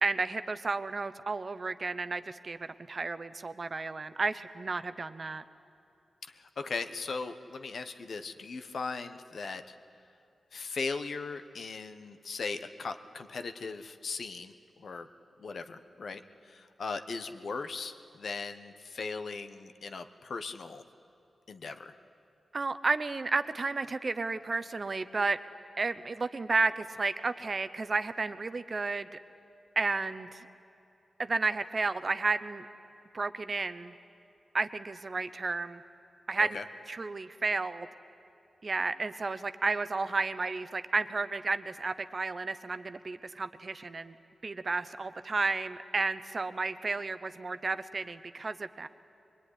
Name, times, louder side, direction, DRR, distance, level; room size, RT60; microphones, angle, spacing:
voice 1, 0.0-2.6 2.9-5.4 22.5-25.4 25.8-29.2 29.8-30.5 31.2-32.7 33.1-33.9 34.5-35.8 36.3-36.6 36.9-37.9 38.6-44.1 44.4-48.9, right 3 dB, 35° right, 12 dB, 0.8 m, -32 dB
voice 2, 6.3-9.7 10.5-15.1 15.4-20.8 21.5-21.9 36.4-36.6, left 4 dB, 65° left, 8 dB, 1.1 m, -38 dB
23.0 x 23.0 x 10.0 m, 2.7 s
wide cardioid pair, 145°, 0 cm